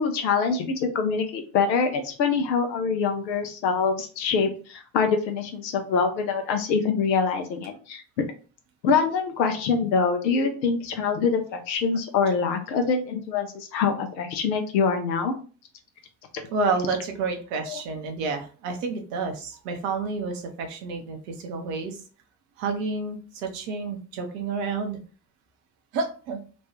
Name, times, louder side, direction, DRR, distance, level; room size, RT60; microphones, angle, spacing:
voice 1, 0.0-8.0 8.8-15.4 16.3-16.4 17.7-17.8, left 5 dB, 90° left, 6 dB, 0.6 m, -25 dB
voice 2, 16.5-22.0 22.6-25.0 25.9-26.4, right 4 dB, 75° right, 4 dB, 0.8 m, -29 dB
3.0 x 2.2 x 2.9 m, 0.38 s
hypercardioid pair, 45°, 50 cm